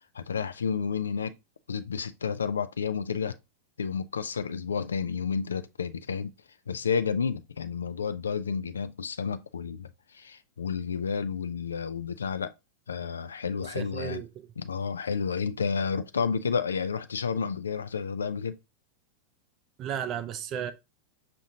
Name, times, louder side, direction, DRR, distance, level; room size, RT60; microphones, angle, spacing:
voice 1, 0.1-1.4 1.7-3.4 3.8-6.3 6.7-12.5 12.9-14.2 14.6-18.6, left 6 dB, 70° left, 0.3 m, -31 dB
voice 2, 13.6-14.5 19.8-20.7, right 9 dB, 35° right, 0.5 m, -34 dB
5.9 x 2.5 x 2.7 m
figure-of-eight pair, 90°, 0 cm